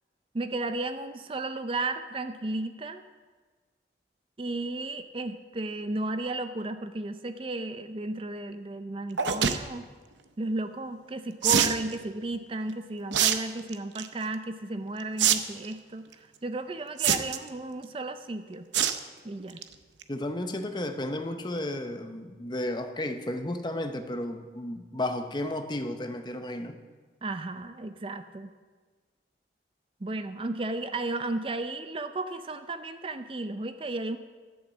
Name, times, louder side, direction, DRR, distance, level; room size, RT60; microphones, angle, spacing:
voice 1, 0.3-3.0 4.4-9.9 10.4-16.1 16.4-18.7 19.2-19.6 27.2-28.5 30.0-34.2, right 2 dB, 30° right, 9 dB, 0.4 m, -34 dB
sound 1, 9.2-9.6 11.4-11.8 13.1-13.4 13.7-14.1 15.2-15.3 15.6-15.7 17.0-17.5 18.7-19.0 19.4-19.6 20.0-20.1 20.3-20.4, right 8 dB, 90° right, 0.7 m, -23 dB
voice 2, 20.1-26.8, left 1 dB, 25° left, 7 dB, 0.7 m, -33 dB
12.0 x 7.3 x 7.1 m, 1.4 s
head